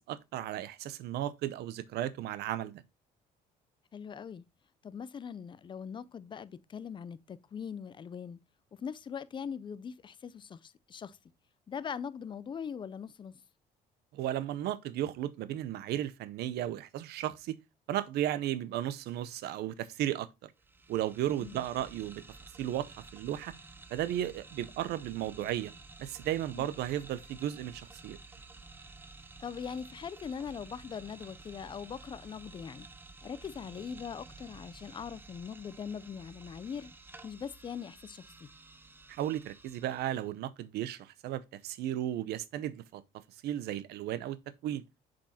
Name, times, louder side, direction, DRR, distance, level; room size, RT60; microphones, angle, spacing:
voice 1, 0.1-2.8 14.1-17.6 17.9-20.5 20.9-22.2 22.6-23.5 23.9-25.7 26.0-28.2 39.1-43.0 43.4-44.8, right 12 dB, 75° right, 0.6 m, -35 dB
voice 2, 3.9-4.4 4.8-8.4 8.8-11.2 11.7-13.4 21.4-21.6 26.5-26.7 29.4-32.9 33.2-36.9 37.2-38.5, left 7 dB, 30° left, 0.4 m, -41 dB
sound 1, 20.6-40.3, right 3 dB, 10° right, 0.6 m, -52 dB
7.2 x 5.2 x 2.7 m
cardioid pair, 110°, 17 cm